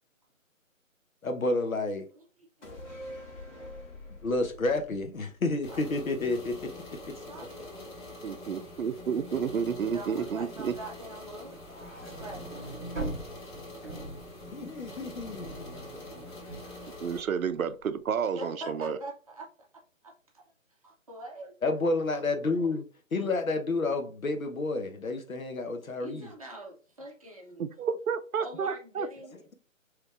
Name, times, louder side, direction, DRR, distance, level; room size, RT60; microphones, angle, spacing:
voice 1, 1.2-2.1 4.2-6.7 7.1-7.2 14.5-16.2 21.6-22.9 23.1-26.3, left 2 dB, 80° left, 0.9 m, -30 dB
voice 2, 2.1-3.5 5.7-5.8 7.2-8.1 9.8-11.6 12.2-12.8 15.2-15.3 18.4-19.5 19.7-20.4 20.8-21.5 26.0-27.7 28.4-29.5, right 1 dB, 25° right, 0.7 m, -44 dB
sound 1, 2.6-6.2 6.5-6.6, left 1 dB, 60° left, 1.5 m, -45 dB
sound 2, 5.6-17.2, left 2 dB, 35° left, 1.5 m, -45 dB
voice 3, 8.2-10.7 17.0-19.0 27.6-29.1, right 7 dB, 90° right, 0.5 m, -31 dB
sound 3, 11.5-17.9, right 2 dB, 5° left, 0.7 m, -42 dB
3.4 x 3.0 x 2.4 m
figure-of-eight pair, 155°, 40 cm